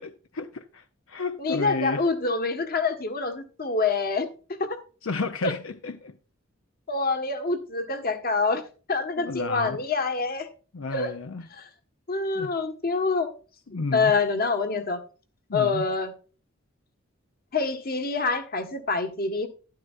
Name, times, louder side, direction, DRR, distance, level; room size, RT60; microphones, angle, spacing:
voice 1, 0.0-2.0 5.0-6.2 9.2-9.8 10.7-11.5 12.3-12.5 13.7-14.1 15.5-15.8, left 3 dB, 80° left, 0.7 m, -32 dB
voice 2, 1.4-4.3 4.6-4.8 6.9-8.6 8.9-10.5 10.9-11.1 11.5-11.7 12.1-13.3 13.9-15.0 15.5-16.1 17.5-19.5, left 4 dB, 50° left, 1.6 m, -26 dB
11.5 x 11.0 x 2.6 m
head